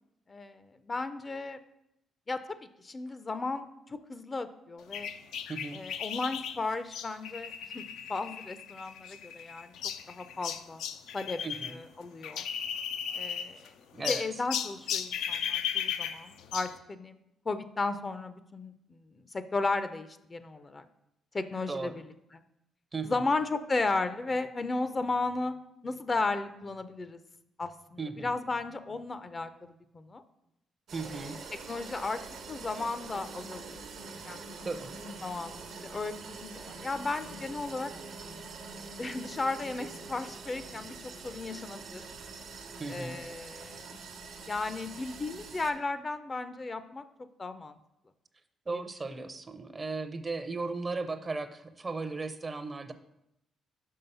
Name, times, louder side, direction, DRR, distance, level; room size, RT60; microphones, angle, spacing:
voice 1, 0.3-1.6 2.3-2.4 2.8-3.6 4.1-5.1 5.7-7.8 8.1-9.7 10.1-10.8 11.1-11.4 11.7-12.5 13.1-13.7 14.1-17.1 17.5-18.7 19.1-20.8 21.3-21.9 22.3-22.4 23.0-25.6 25.8-27.2 27.6-29.5 29.9-30.2 31.1-31.3 31.7-32.2 32.5-33.8 34.2-34.4 35.0-37.9 39.0-40.9 41.2-42.0 42.9-43.8 44.5-47.0 47.4-47.8, left 3 dB, 30° left, 11 dB, 0.4 m, -34 dB
sound 1, 4.9-11.7 12.0-13.7 14.0-16.8, left 8 dB, 85° left, 0.4 m, -36 dB
voice 2, 11.4-11.8 13.9-14.2 21.7-21.9 22.9-23.2 28.0-28.4 30.9-31.4 34.6-34.9 42.8-43.2 48.7-52.9, right 3 dB, 30° right, 9 dB, 0.5 m, -36 dB
sound 2, 30.9-45.7, right 4 dB, 75° right, 0.9 m, -45 dB
5.5 x 5.2 x 5.4 m, 0.83 s
cardioid pair, 90°, 0 cm